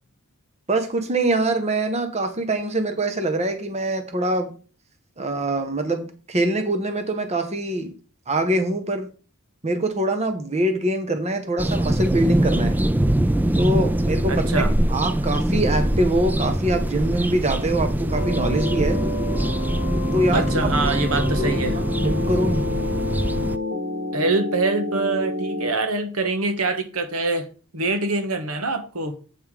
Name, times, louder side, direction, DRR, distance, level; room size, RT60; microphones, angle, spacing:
voice 1, 0.7-4.5 5.2-7.9 8.3-9.1 9.6-12.8 13.6-19.0 20.1-20.5 21.4-21.5 22.0-22.6, right 1 dB, 30° right, 1.0 m, -24 dB
sound 1, 11.6-23.6, right 1 dB, 10° right, 0.3 m, -23 dB
voice 2, 14.3-14.7 20.3-21.8 24.1-27.5 27.7-29.1, right 3 dB, 75° right, 1.3 m, -24 dB
sound 2, 18.1-25.7, left 2 dB, 55° right, 4.9 m, -29 dB
8.2 x 5.5 x 4.9 m
head